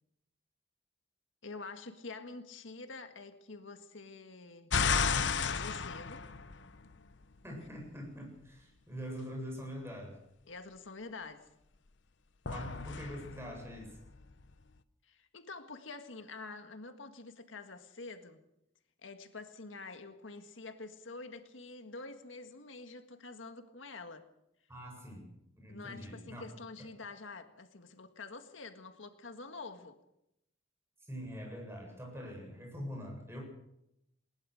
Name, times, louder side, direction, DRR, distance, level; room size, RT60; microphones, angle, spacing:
voice 1, 1.4-4.7 5.4-6.2 10.5-11.5 15.0-18.4 19.0-24.2 25.7-30.0, left 3 dB, 85° left, 7 dB, 1.7 m, -47 dB
sound 1, 4.7-7.1 12.5-14.5, left 5 dB, 65° left, 0.9 m, -33 dB
voice 2, 7.4-10.2 12.4-14.0 24.7-25.3 25.6-26.4 31.0-33.5, equal, 15° right, 1 dB, 7.8 m, -44 dB
21.0 x 19.5 x 6.5 m, 0.81 s
head